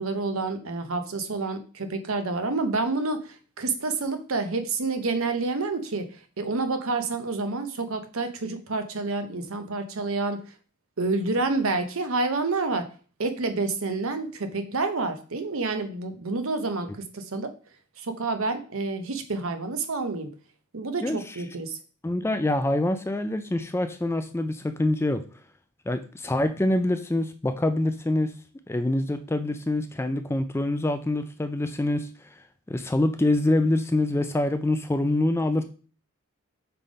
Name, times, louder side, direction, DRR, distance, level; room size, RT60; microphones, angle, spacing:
voice 1, 0.0-10.5 11.0-12.9 13.2-17.5 18.0-20.3 20.7-21.8, right 3 dB, 70° right, 8 dB, 0.8 m, -28 dB
voice 2, 22.0-25.2 25.9-28.3 28.7-35.6, left 1 dB, 10° left, 9 dB, 0.3 m, -25 dB
5.6 x 3.4 x 5.1 m, 0.39 s
head